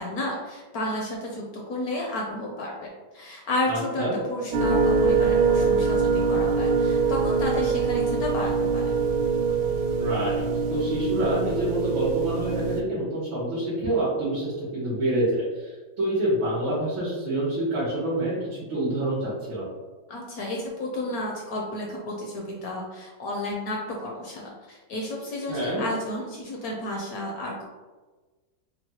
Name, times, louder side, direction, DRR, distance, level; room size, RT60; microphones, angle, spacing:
voice 1, 0.0-9.0 20.1-27.6, left 1 dB, 70° left, -1 dB, 0.9 m, -32 dB
voice 2, 3.7-4.2 10.0-10.5 10.7-19.7 25.5-25.8, right 1 dB, 90° right, -13 dB, 2.1 m, -27 dB
sound 1, 4.5-12.8, right 4 dB, 75° right, 1.0 m, -23 dB
5.5 x 2.3 x 2.8 m, 1.3 s
omnidirectional pair, 2.1 m